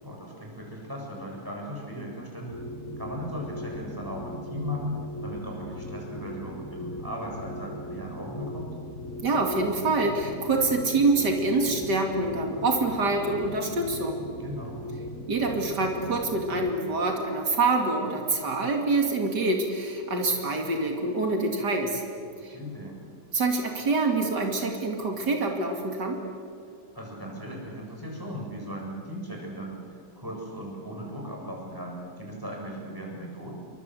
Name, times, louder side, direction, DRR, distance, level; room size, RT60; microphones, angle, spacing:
voice 1, 0.0-2.6 3.0-8.7 14.4-14.9 22.5-23.0 26.9-33.5, equal, 10° right, -2 dB, 7.3 m, -37 dB
sound 1, 2.5-16.7, equal, 65° left, 3.4 m, -39 dB
voice 2, 9.2-14.2 15.3-22.0 22.4-22.6 23.3-26.2, right 3 dB, 85° right, 2 dB, 3.2 m, -26 dB
29.0 x 23.5 x 8.0 m, 2.3 s
omnidirectional pair, 1.8 m